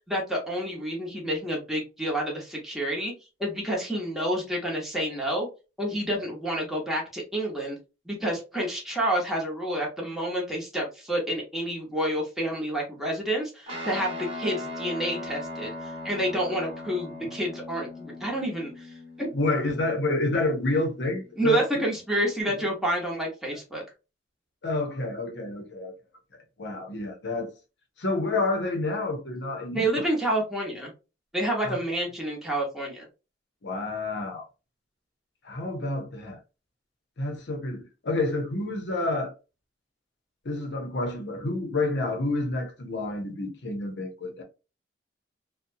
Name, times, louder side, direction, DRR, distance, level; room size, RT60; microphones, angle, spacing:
voice 1, 0.1-3.1 3.4-5.5 5.8-7.8 8.1-19.3 21.4-23.8 29.7-30.9 31.3-33.1, right 1 dB, ahead, 0.9 m, -29 dB
Guitar, 13.7-22.4, left 1 dB, 35° right, 1.0 m, -40 dB
voice 2, 19.3-21.6 22.6-22.7 23.5-23.6 24.6-25.9 26.6-27.5 28.0-30.0 31.6-31.8 33.6-34.4 35.4-36.4 37.2-39.3 40.4-44.4, left 2 dB, 65° left, 0.7 m, -29 dB
2.7 x 2.1 x 2.6 m
head